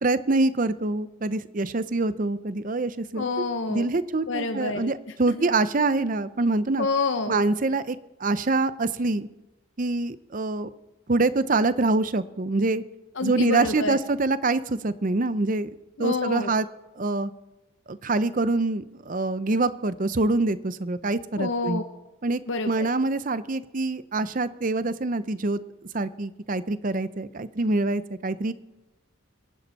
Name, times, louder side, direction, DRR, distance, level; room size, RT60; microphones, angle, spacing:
voice 1, 0.0-3.3 3.7-6.9 7.3-9.3 9.8-10.7 11.1-12.8 13.2-15.7 16.0-16.7 17.0-17.3 17.9-21.8 22.2-22.4 22.7-25.6 25.9-28.5, right 2 dB, 40° right, 14 dB, 0.6 m, -25 dB
voice 2, 3.1-3.9 4.3-4.9 5.4-5.5 6.8-7.4 13.2-14.0 16.0-16.5 21.4-21.8 22.5-22.9, left 3 dB, 65° left, 7 dB, 0.8 m, -28 dB
25.5 x 11.5 x 4.2 m, 1.0 s
head